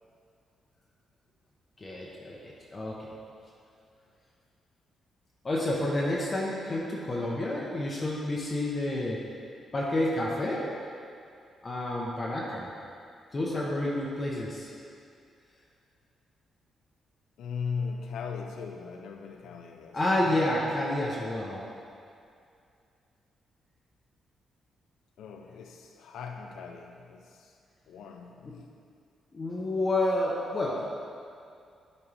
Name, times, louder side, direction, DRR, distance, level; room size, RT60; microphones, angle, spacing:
voice 1, 1.8-3.1 5.4-9.2 9.7-10.7 11.6-12.7 13.3-14.7 19.9-21.7 28.4-28.5 29.3-30.9, left 1 dB, 25° left, -4 dB, 0.8 m, -29 dB
voice 2, 17.4-20.0 25.2-27.5 27.9-28.7, left 5 dB, 85° left, 3 dB, 0.4 m, -38 dB
11.0 x 4.3 x 3.4 m, 2.4 s
cardioid pair, 140°, 0 cm